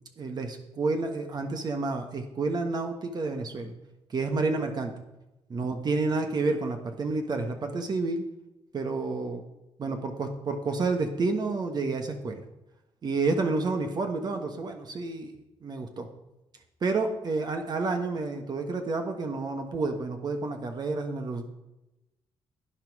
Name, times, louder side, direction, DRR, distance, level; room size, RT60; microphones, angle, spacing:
voice 1, 0.2-3.7 4.1-4.9 5.5-8.2 8.7-9.4 9.8-12.4 13.0-15.3 15.6-16.1 16.8-21.5, right 3 dB, 45° right, 5 dB, 1.4 m, -29 dB
11.5 x 9.3 x 4.9 m, 0.96 s
cardioid pair, 100°, 10 cm